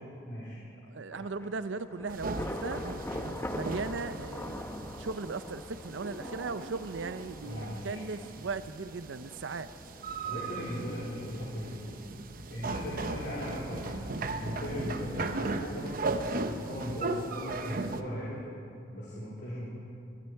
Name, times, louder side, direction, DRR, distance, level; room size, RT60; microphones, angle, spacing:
voice 1, 0.3-0.6 7.4-8.0 10.2-11.9 12.5-15.9 16.3-18.4 18.9-19.7, equal, 65° left, -8 dB, 3.7 m, -38 dB
voice 2, 0.9-2.8 3.5-9.7, right 4 dB, 80° right, 13 dB, 0.6 m, -38 dB
Thunder / Rain, 1.1-14.7, left 1 dB, 15° left, 0.8 m, -44 dB
sound 1, 2.1-18.0, right 3 dB, 50° right, 0.8 m, -37 dB
21.5 x 14.5 x 4.6 m, 2.6 s
head